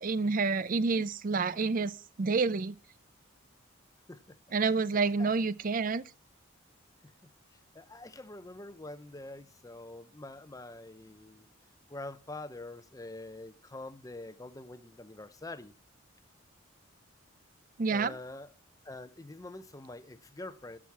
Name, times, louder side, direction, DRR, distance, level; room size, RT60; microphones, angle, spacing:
voice 1, 0.0-1.9 2.2-2.7 4.5-6.0 17.8-18.1, right 4 dB, 40° right, 0.5 m, -28 dB
voice 2, 4.9-5.3 7.5-11.5 11.9-15.7 17.9-18.5 18.8-20.8, left 2 dB, 15° left, 0.6 m, -45 dB
12.0 x 6.3 x 7.0 m
head